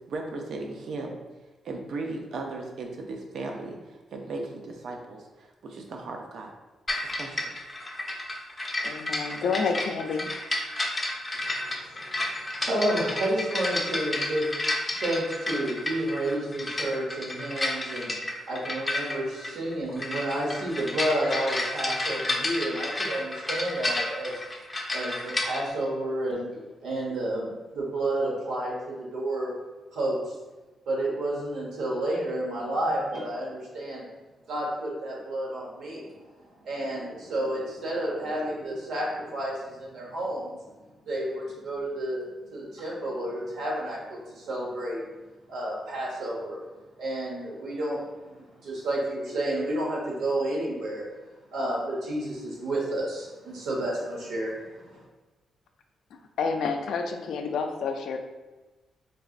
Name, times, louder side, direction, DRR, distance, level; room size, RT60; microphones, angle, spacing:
voice 1, 0.1-1.2 1.6-6.5 7.0-7.5, right 3 dB, 70° right, 2 dB, 0.6 m, -36 dB
sound 1, 6.9-25.6, left 1 dB, 20° left, 0.6 m, -31 dB
voice 2, 8.8-10.3 56.1-58.2, left 5 dB, 80° left, 5 dB, 0.4 m, -29 dB
voice 3, 11.3-14.5 14.9-18.1 18.5-24.4 24.9-26.5 26.8-29.5 29.9-30.3 30.9-34.0 34.5-40.6 41.1-42.2 42.5-45.0 45.5-46.6 47.0-48.0 48.3-51.0 51.5-55.0, right 1 dB, 85° right, -4 dB, 1.2 m, -31 dB
3.9 x 3.3 x 2.5 m, 1.2 s
cardioid pair, 105°, 0 cm